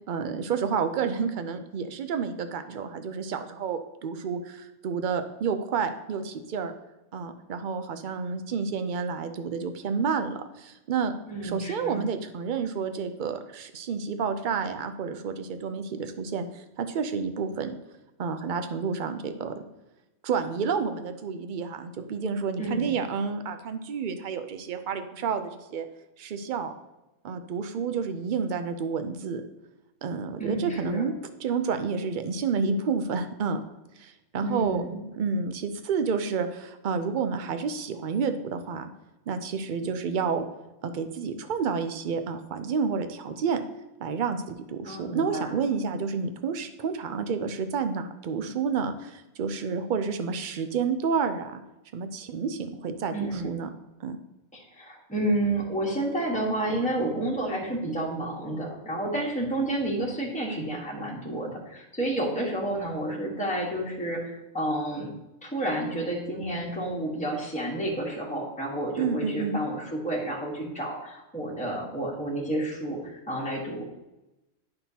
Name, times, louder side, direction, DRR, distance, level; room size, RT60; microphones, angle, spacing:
voice 1, 0.1-6.7 7.1-11.1 11.4-17.7 18.2-19.6 20.2-25.9 26.2-26.7 27.2-29.4 30.0-31.1 31.4-33.6 34.0-34.8 35.2-38.9 39.3-40.4 40.8-43.6 44.0-51.6 51.9-53.7 54.0-54.2 69.0-69.6, right 5 dB, 55° right, 8 dB, 0.6 m, -30 dB
voice 2, 11.3-12.0 22.6-22.9 30.4-31.1 34.4-35.0 44.8-45.5 53.1-53.5 54.5-65.1 65.4-73.9, right 1 dB, 5° left, -4 dB, 1.3 m, -30 dB
9.0 x 5.7 x 2.8 m, 0.98 s
omnidirectional pair, 1.3 m